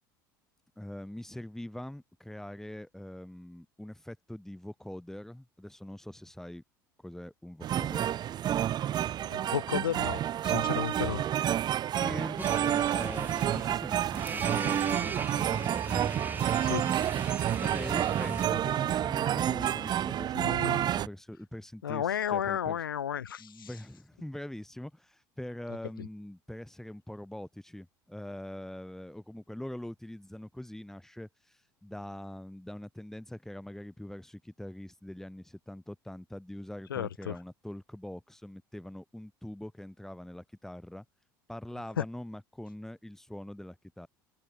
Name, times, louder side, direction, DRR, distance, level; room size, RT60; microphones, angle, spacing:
voice 1, 0.8-6.6 7.0-8.1 12.0-16.1 17.6-22.8 23.4-41.0 41.5-44.1, left 1 dB, 5° left, 3.3 m, -43 dB
sound 1, 7.6-21.1, right 11 dB, 40° right, 0.8 m, -29 dB
voice 2, 9.3-11.3 16.6-16.8 20.3-20.8 21.8-23.7 26.0-26.1 36.9-37.3 42.0-42.1, left 9 dB, 80° left, 0.8 m, -33 dB
sound 2, 12.4-18.5, right 4 dB, 15° right, 1.0 m, -38 dB
sound 3, 17.4-21.0, right 25 dB, 60° right, 2.8 m, -50 dB
figure-of-eight pair, 70°, 11 cm